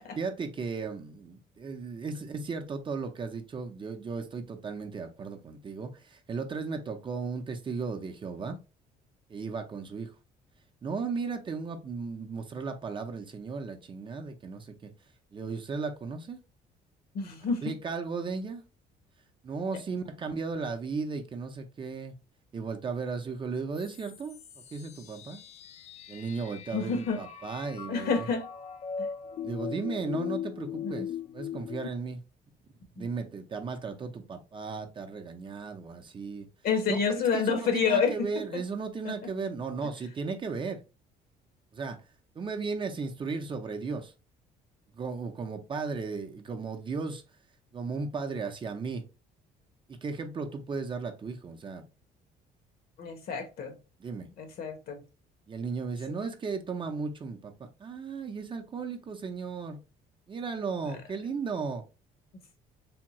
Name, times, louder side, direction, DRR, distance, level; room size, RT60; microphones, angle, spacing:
voice 1, 0.2-8.6 9.3-10.1 10.8-14.9 15.3-16.4 17.6-18.6 19.4-22.1 22.5-24.4 24.7-25.4 26.1-28.3 29.4-31.1 31.3-32.2 33.0-36.5 36.9-40.8 41.7-42.0 42.4-44.1 45.0-47.2 47.7-49.0 49.9-51.8 54.0-54.3 55.5-59.8 60.3-61.8, right 4 dB, 30° right, 0.5 m, -35 dB
voice 2, 17.1-17.7 26.7-27.2 27.9-28.4 29.0-29.1 30.8-31.1 33.0-33.1 36.6-38.6 39.0-39.1 53.0-53.7 54.4-55.0 56.1-56.2 62.3-62.4, left 5 dB, 65° left, 0.9 m, -29 dB
sound 1, 23.8-31.9, left 8 dB, 40° left, 0.4 m, -39 dB
3.5 x 2.3 x 2.9 m
cardioid pair, 110°, 17 cm